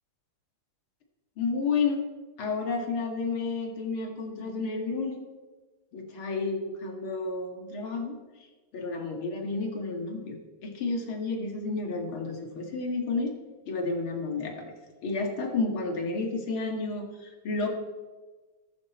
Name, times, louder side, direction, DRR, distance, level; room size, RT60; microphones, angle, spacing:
voice 1, 1.4-2.0 2.4-5.2 5.9-8.1 8.7-10.4 10.6-13.3 13.7-14.7 15.0-17.7, left 4 dB, 75° left, 3 dB, 2.8 m, -31 dB
15.0 x 13.5 x 4.3 m, 1.3 s
omnidirectional pair, 2.3 m